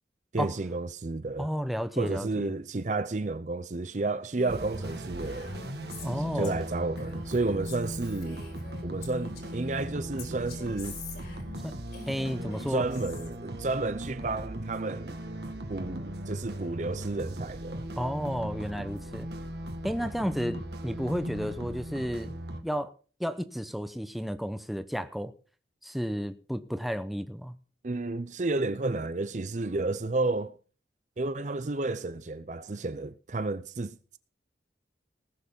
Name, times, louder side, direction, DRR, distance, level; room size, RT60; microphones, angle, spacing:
voice 1, 0.3-1.5 2.0-5.6 6.3-8.4 8.8-11.0 12.7-15.2 15.7-17.9 27.8-30.6 31.2-34.2, right 3 dB, 40° right, 0.6 m, -31 dB
voice 2, 1.4-2.5 6.0-6.6 11.6-11.8 12.1-12.8 18.0-19.3 19.8-22.3 22.6-22.9 23.2-25.3 25.8-27.6, equal, ahead, 0.8 m, -32 dB
Female speech woman speaking, 4.3-9.7 10.2-13.3, left 3 dB, 60° left, 4.4 m, -46 dB
sound 1, 4.5-22.6, equal, 65° right, 1.7 m, -38 dB
19.5 x 6.6 x 5.4 m
head